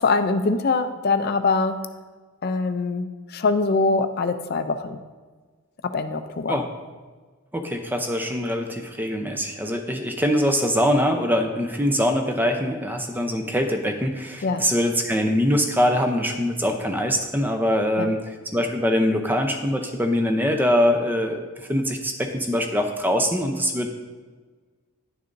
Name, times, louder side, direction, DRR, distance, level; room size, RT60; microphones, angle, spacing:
voice 1, 0.0-1.7 2.4-5.0 5.9-6.6 14.4-14.6 18.0-18.1, left 3 dB, 45° left, 9 dB, 0.5 m, -23 dB
voice 2, 7.5-18.2 18.5-21.4 21.7-23.9, equal, 10° right, 4 dB, 0.6 m, -23 dB
10.5 x 6.7 x 2.6 m, 1.4 s
head